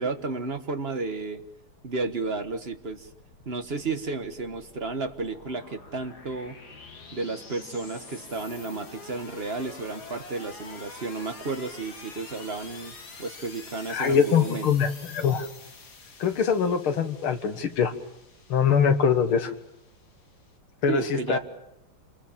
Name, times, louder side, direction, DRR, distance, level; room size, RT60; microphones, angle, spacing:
voice 1, 0.0-1.4 1.8-3.1 3.4-6.6 7.1-12.9 13.2-14.7 20.9-21.4, right 3 dB, 35° right, 7 dB, 1.4 m, -32 dB
sound 1, 2.2-20.5, left 4 dB, 50° left, 2.8 m, -47 dB
voice 2, 13.9-15.5 16.2-17.9 18.5-19.5 20.8-21.4, left 7 dB, 80° left, 8 dB, 2.4 m, -23 dB
27.5 x 22.0 x 7.3 m, 0.81 s
omnidirectional pair, 2.3 m